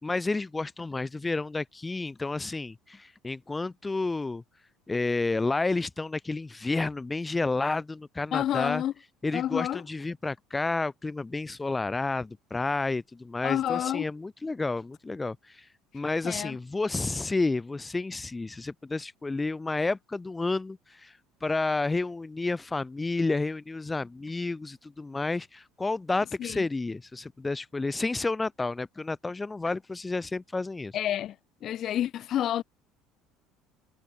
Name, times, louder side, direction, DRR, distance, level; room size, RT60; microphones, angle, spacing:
voice 1, 0.0-4.4 4.9-8.8 9.2-15.7 15.9-31.0, left 3 dB, 15° left, 2.5 m, -30 dB
voice 2, 8.3-8.9 9.3-9.8 13.4-14.0 16.2-16.6 26.4-26.6 30.9-31.4 31.6-32.6, left 11 dB, 50° left, 2.6 m, -29 dB
figure-of-eight pair, 60°, 0 cm